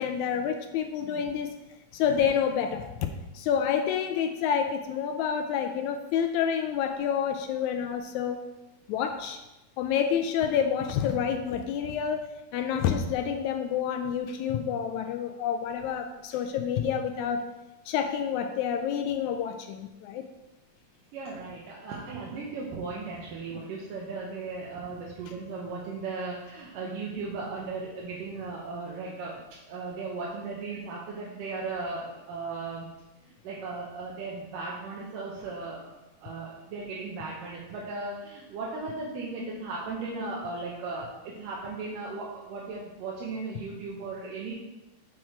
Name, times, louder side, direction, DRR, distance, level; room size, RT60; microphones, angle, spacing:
voice 1, 0.0-1.5 1.9-8.5 8.9-9.4 9.8-17.4 17.9-20.3, left 8 dB, 80° left, 6 dB, 1.7 m, -28 dB
voice 2, 21.1-29.4 29.7-32.9 33.4-44.5, right 3 dB, 85° right, -4 dB, 2.6 m, -36 dB
6.4 x 6.1 x 4.5 m, 1.0 s
omnidirectional pair, 3.8 m